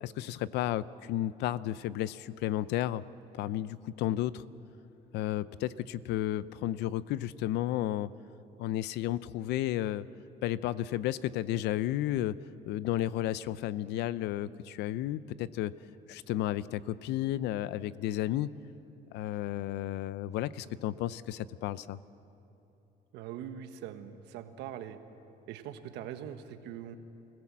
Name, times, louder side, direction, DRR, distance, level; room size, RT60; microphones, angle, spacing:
voice 1, 0.0-3.0 3.3-4.4 5.1-8.1 8.6-10.1 10.4-12.3 12.7-15.7 16.1-18.5 19.1-22.0, left 13 dB, 85° left, 17 dB, 0.6 m, -32 dB
voice 2, 23.1-25.0 25.5-27.0, right 10 dB, 90° right, 8 dB, 1.3 m, -42 dB
25.5 x 16.5 x 7.5 m, 2.9 s
cardioid pair, 110°, 17 cm